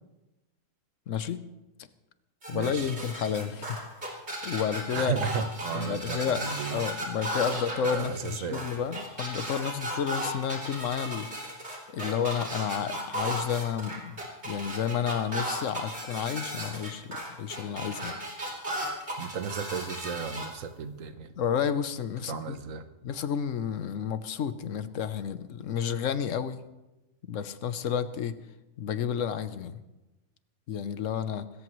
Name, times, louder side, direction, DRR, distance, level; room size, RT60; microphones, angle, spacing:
voice 1, 1.1-1.4 2.5-3.8 4.4-5.2 5.7-6.4 6.7-11.3 11.9-14.2 14.4-18.2 21.4-22.6 23.0-26.6 27.3-28.4 28.8-29.8 30.7-31.5, left 8 dB, 75° left, 13 dB, 1.1 m, -31 dB
sound 1, 2.4-20.5, right 1 dB, 55° right, 3.6 m, -35 dB
voice 2, 2.5-2.9 4.9-6.8 7.9-8.7 19.2-21.4 22.2-22.8, right 6 dB, 90° right, 9 dB, 1.4 m, -34 dB
25.0 x 14.0 x 3.1 m, 1.0 s
omnidirectional pair, 1.3 m